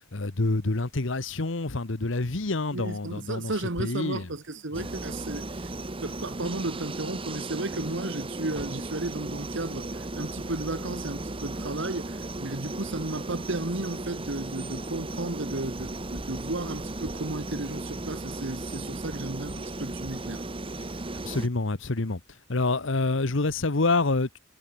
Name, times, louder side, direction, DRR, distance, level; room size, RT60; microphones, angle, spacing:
voice 1, 0.1-3.5 3.8-4.3 4.7-4.9 21.2-22.2 22.5-24.4, left 3 dB, 65° left, 1.2 m, -27 dB
voice 2, 2.7-5.7 6.0-20.4, right 2 dB, 65° right, 1.9 m, -34 dB
sound 1, 4.7-21.5, right 2 dB, 25° right, 1.3 m, -36 dB
head